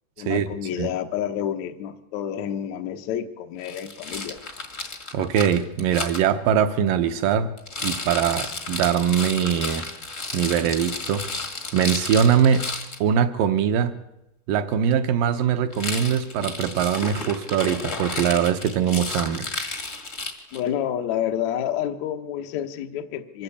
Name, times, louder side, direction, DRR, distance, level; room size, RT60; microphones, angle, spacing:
voice 1, 0.2-4.4 20.5-23.4, left 10 dB, 65° left, 6 dB, 1.9 m, -29 dB
Rattle, 3.6-6.2 7.6-13.0 15.7-20.7, left 3 dB, 35° left, 1.2 m, -32 dB
voice 2, 5.1-7.5 7.8-9.9 10.3-11.2 11.7-12.6 13.0-13.9 14.5-19.5, right 8 dB, 70° right, 9 dB, 2.2 m, -22 dB
24.5 x 14.0 x 8.6 m, 0.89 s
omnidirectional pair, 4.8 m